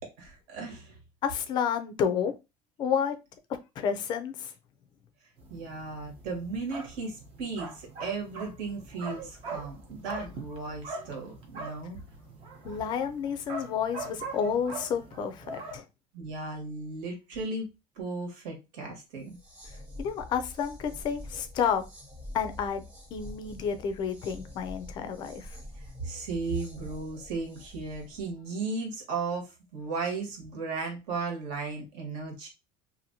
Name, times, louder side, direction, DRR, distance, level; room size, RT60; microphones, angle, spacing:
voice 1, 0.2-1.0 5.5-12.0 16.1-17.6 17.9-19.4 25.7-32.5, right 4 dB, 65° right, 1 dB, 1.5 m, -36 dB
voice 2, 1.2-2.3 2.8-3.1 3.8-4.5 12.6-15.8 20.0-21.8 22.3-22.8 23.1-25.5, left 7 dB, 35° left, 9 dB, 0.4 m, -30 dB
sound 1, 5.4-15.8, right 3 dB, 40° right, 0.8 m, -42 dB
sound 2, 19.2-28.2, left 1 dB, 10° right, 0.7 m, -46 dB
2.9 x 2.6 x 2.7 m, 0.25 s
cardioid pair, 175°, 14 cm